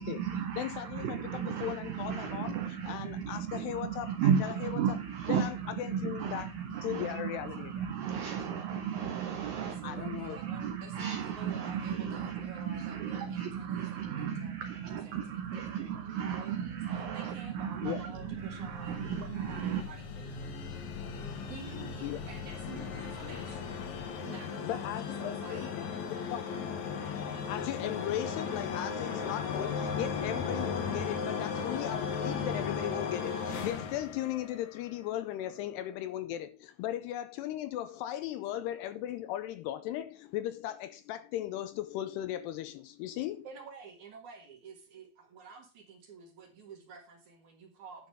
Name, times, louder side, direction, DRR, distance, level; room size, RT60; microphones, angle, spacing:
voice 1, 0.0-19.8, right 8 dB, 80° right, 2.0 m, -34 dB
voice 2, 0.6-4.8 5.3-7.9 9.8-10.4 17.8-18.0 21.8-22.2 24.7-25.9 26.1-26.5 27.5-43.5, left 12 dB, 80° left, 2.5 m, -37 dB
voice 3, 9.5-14.7 15.0-26.1 43.4-48.1, right 5 dB, 55° right, 2.6 m, -50 dB
sound 1, 18.1-24.1, left 2 dB, 45° left, 2.2 m, -45 dB
sound 2, 18.8-35.0, left 6 dB, 60° left, 2.0 m, -36 dB
11.0 x 5.7 x 5.4 m
omnidirectional pair, 5.1 m